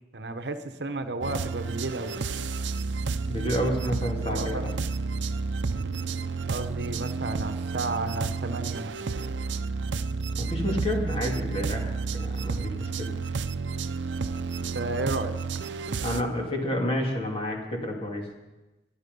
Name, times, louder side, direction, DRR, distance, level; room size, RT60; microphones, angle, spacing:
voice 1, 0.1-2.2 4.2-4.6 6.5-8.9 14.6-15.4, right 2 dB, 65° right, 8 dB, 1.0 m, -32 dB
sound 1, 1.2-16.2, right 4 dB, 90° right, 0.6 m, -31 dB
voice 2, 3.3-4.7 10.4-13.1 16.0-18.2, equal, 30° left, 0 dB, 2.6 m, -30 dB
24.5 x 8.9 x 5.4 m, 1.1 s
head